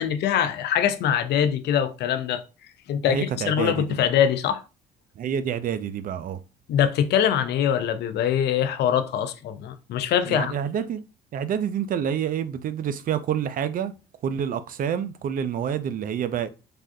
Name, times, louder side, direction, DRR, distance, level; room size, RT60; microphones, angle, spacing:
voice 1, 0.0-2.4 2.9-4.6 6.7-10.5, left 9 dB, 65° left, 0.5 m, -23 dB
voice 2, 3.1-4.0 5.2-6.4 10.3-11.0 11.3-13.9 14.2-16.5, right 8 dB, 50° right, 0.4 m, -28 dB
3.3 x 2.3 x 2.6 m
supercardioid pair, 65°, 19 cm